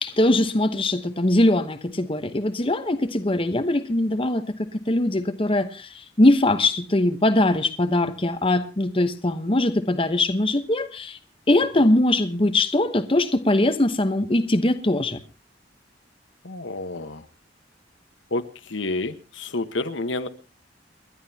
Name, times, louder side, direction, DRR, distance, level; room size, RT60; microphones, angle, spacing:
voice 1, 0.0-4.4 4.9-11.2 11.5-15.2, left 1 dB, 30° left, 9 dB, 1.0 m, -21 dB
voice 2, 16.4-17.2 18.3-20.3, left 2 dB, 80° left, 9 dB, 1.2 m, -29 dB
29.5 x 11.0 x 2.8 m, 0.30 s
head